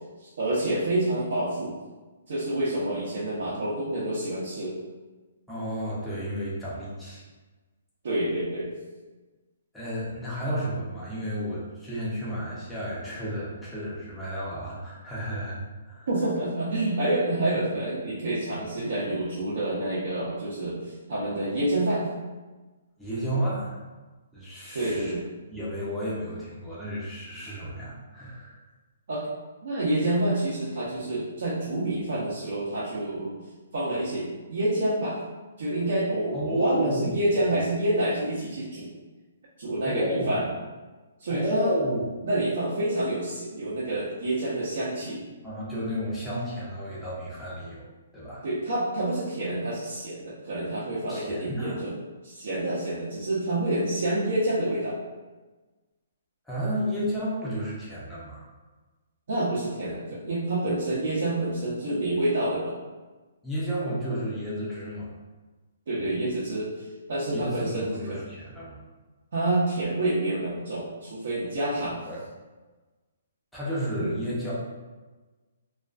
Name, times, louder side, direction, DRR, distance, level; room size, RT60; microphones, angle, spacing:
voice 1, 0.2-1.7 2.3-4.8 8.0-8.7 16.1-22.0 24.7-25.2 29.1-29.3 29.6-33.3 33.7-35.2 35.6-38.9 39.6-40.4 41.2-41.7 42.2-45.2 48.4-51.9 52.2-54.9 59.3-62.8 65.9-68.2 69.3-72.0 74.0-74.2, right 1 dB, 60° right, -8 dB, 0.6 m, -28 dB
voice 2, 5.5-7.3 9.7-15.6 15.8-16.1 23.0-23.8 24.3-25.1 25.5-28.6 36.3-37.3 39.8-40.4 41.3-42.1 45.4-47.9 48.1-48.4 51.1-51.8 56.5-58.5 63.4-65.1 67.3-68.8 71.7-72.2 73.5-74.5, equal, ahead, -10 dB, 0.5 m, -32 dB
2.4 x 2.3 x 2.3 m, 1.3 s
hypercardioid pair, 165°, 0 cm